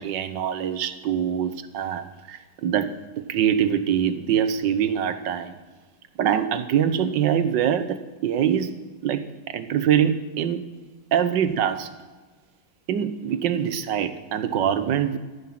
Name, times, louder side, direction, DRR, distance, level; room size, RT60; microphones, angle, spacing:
voice 1, 0.0-2.9 3.3-5.6 6.2-10.7 11.1-11.9 12.9-15.2, right 9 dB, 75° right, 11 dB, 1.6 m, -24 dB
14.5 x 11.0 x 5.9 m, 1.4 s
omnidirectional pair, 1.9 m